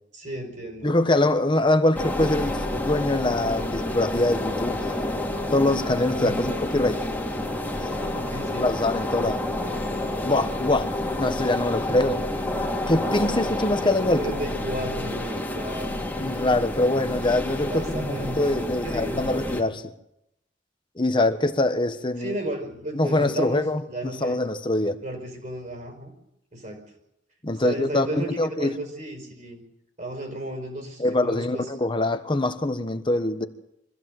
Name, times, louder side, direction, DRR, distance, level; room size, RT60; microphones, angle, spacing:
voice 1, 0.1-1.0 6.0-6.6 8.1-8.7 9.7-10.0 13.8-16.0 17.7-19.4 22.2-24.4 25.0-26.1 26.5-26.8 27.6-29.6 30.0-31.7, right 1 dB, 45° right, 5.0 m, -34 dB
voice 2, 0.8-5.0 5.5-7.0 8.6-9.4 10.2-10.9 11.2-12.2 12.9-14.2 16.2-19.8 21.0-22.3 22.9-25.0 27.4-28.7 31.0-33.5, left 2 dB, 25° left, 1.3 m, -24 dB
sound 1, 1.9-19.6, left 1 dB, 10° left, 2.4 m, -29 dB
24.0 x 15.5 x 7.8 m
head